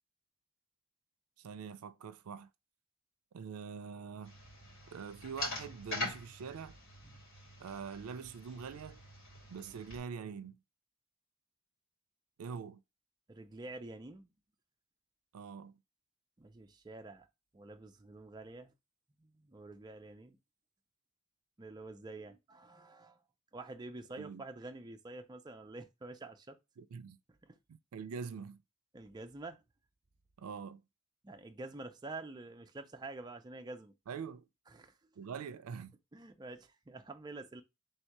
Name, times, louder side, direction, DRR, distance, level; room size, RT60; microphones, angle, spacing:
voice 1, 1.4-2.5 3.3-4.4 4.9-6.8 7.6-9.0 9.5-10.6 12.4-12.8 15.3-15.7 24.2-24.4 26.8-27.2 27.7-28.6 30.4-30.8 34.1-34.5 35.2-36.0, right 6 dB, 85° right, 0.4 m, -44 dB
sound 1, 4.2-10.0, left 2 dB, 60° left, 2.5 m, -44 dB
voice 2, 13.3-14.3 16.4-17.3 17.5-18.7 19.2-20.4 21.6-23.2 23.5-26.6 27.4-27.6 28.9-29.6 31.2-33.9 34.7-34.9 36.1-37.6, right 2 dB, 20° right, 0.4 m, -48 dB
3.5 x 2.7 x 4.5 m
head